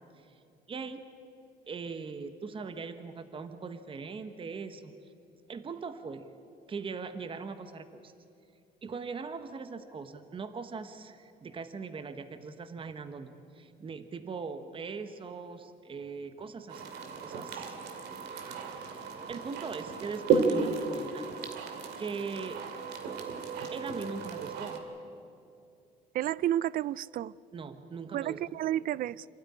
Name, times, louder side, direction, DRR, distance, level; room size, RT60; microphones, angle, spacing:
voice 1, 0.7-1.1 1.7-4.9 5.5-6.3 6.7-8.1 8.8-16.9 17.2-17.8 18.4-21.3 22.0-22.6 23.7-24.8 27.5-28.4, right 5 dB, 30° right, 1.2 m, -40 dB
sound 1, 16.7-24.8, right 5 dB, 80° right, 2.4 m, -33 dB
voice 2, 26.1-27.3 28.1-29.3, right 12 dB, 55° right, 0.4 m, -31 dB
27.0 x 12.5 x 9.9 m
cardioid pair, 110°, 17 cm